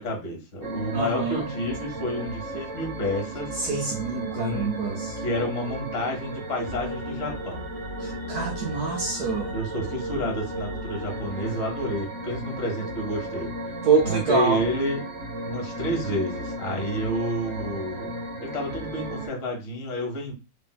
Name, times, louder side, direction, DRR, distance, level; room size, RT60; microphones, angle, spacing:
voice 1, 0.0-3.6 4.3-4.7 5.2-7.7 9.5-13.5 14.0-15.0 15.5-18.1 18.4-20.3, equal, 45° left, 1.0 m, -30 dB
sound 1, 0.6-19.3, right 1 dB, 35° right, 1.4 m, -34 dB
voice 2, 0.9-1.5 3.6-5.2 8.0-9.5 13.8-14.7, right 5 dB, 70° right, 1.0 m, -26 dB
3.3 x 2.5 x 2.2 m
omnidirectional pair, 2.0 m